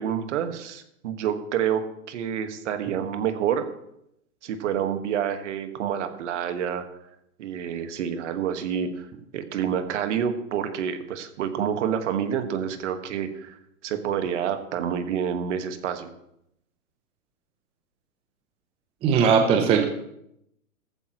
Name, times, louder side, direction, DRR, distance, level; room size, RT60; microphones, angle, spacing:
voice 1, 0.0-3.6 4.4-6.9 7.4-9.1 9.3-13.6 13.8-16.1, right 8 dB, 50° right, 8 dB, 1.7 m, -28 dB
voice 2, 19.0-19.8, right 6 dB, 15° right, 5 dB, 0.7 m, -19 dB
16.0 x 14.5 x 3.1 m, 0.77 s
hypercardioid pair, 135°, 46 cm